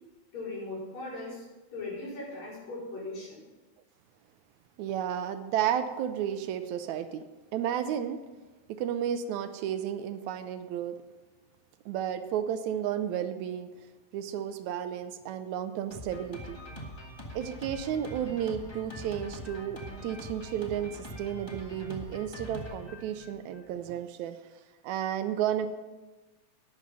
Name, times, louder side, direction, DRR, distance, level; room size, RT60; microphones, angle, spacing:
voice 1, 0.3-1.5 1.7-3.4, left 2 dB, 65° left, -7 dB, 6.1 m, -38 dB
voice 2, 4.8-7.2 7.5-8.2 8.7-11.0 11.9-13.7 14.1-16.6 17.3-24.4 24.8-25.7, right 9 dB, 80° right, 10 dB, 2.0 m, -32 dB
Drum kit, 15.9-23.7, equal, 20° left, 0.8 m, -43 dB
11.0 x 9.4 x 5.5 m, 1.2 s
omnidirectional pair, 3.4 m